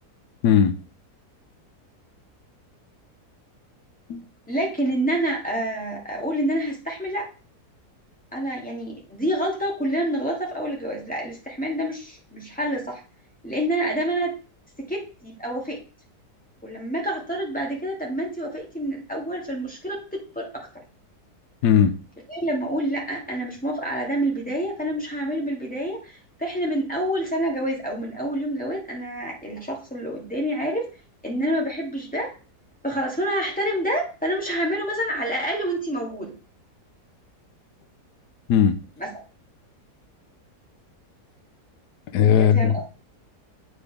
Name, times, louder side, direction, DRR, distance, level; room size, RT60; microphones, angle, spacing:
voice 1, 0.4-0.8 4.1-4.3 21.6-21.9 38.5-38.8 42.1-42.8, left 8 dB, 80° left, 1.3 m, -18 dB
voice 2, 4.5-7.3 8.3-13.0 13.4-14.4 14.8-15.8 16.6-20.7 22.3-30.9 31.2-32.3 32.8-36.3 39.0-39.1 42.3-42.8, right 1 dB, 5° left, 2.2 m, -27 dB
8.3 x 4.9 x 3.4 m
omnidirectional pair, 1.7 m